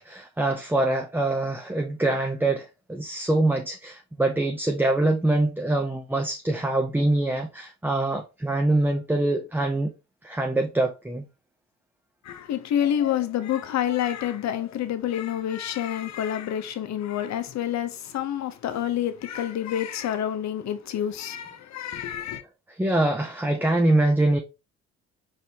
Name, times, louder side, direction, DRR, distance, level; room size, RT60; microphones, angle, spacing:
voice 1, 0.0-9.9 10.2-11.3 22.7-24.4, right 2 dB, 5° right, 0.5 m, -24 dB
voice 2, 12.2-22.4, left 10 dB, 65° left, 0.7 m, -28 dB
4.3 x 3.3 x 2.8 m
cardioid pair, 90°, 30 cm